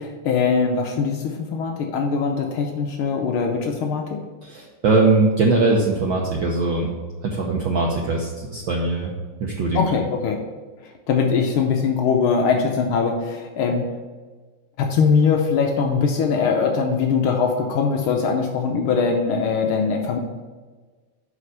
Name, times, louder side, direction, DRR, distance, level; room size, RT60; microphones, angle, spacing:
voice 1, 0.0-4.2 9.7-10.4 11.1-13.9 14.8-20.2, left 5 dB, 90° left, 2 dB, 1.1 m, -21 dB
voice 2, 4.4-6.9 7.2-9.1 9.4-9.8, right 3 dB, 85° right, -1 dB, 1.0 m, -21 dB
6.6 x 5.0 x 6.4 m, 1.4 s
omnidirectional pair, 3.3 m